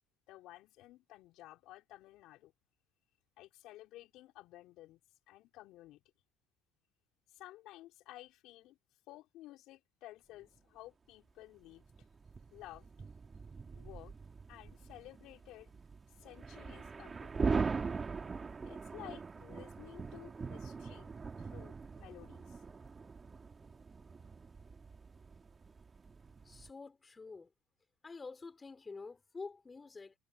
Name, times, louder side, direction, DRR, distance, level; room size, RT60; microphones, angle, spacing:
voice 1, 0.3-2.5 3.4-5.0 5.3-6.0 7.3-8.8 9.1-11.8 12.5-12.9 13.7-14.1 14.5-15.7 16.2-17.3 18.6-21.1 21.4-22.6, left 16 dB, 70° left, 4.3 m, -54 dB
sound 1, 10.4-10.6 11.7-26.7, right 4 dB, 30° right, 2.8 m, -41 dB
voice 2, 26.4-27.5 28.0-30.1, left 4 dB, 25° left, 3.1 m, -48 dB
hypercardioid pair, 70°, 0 cm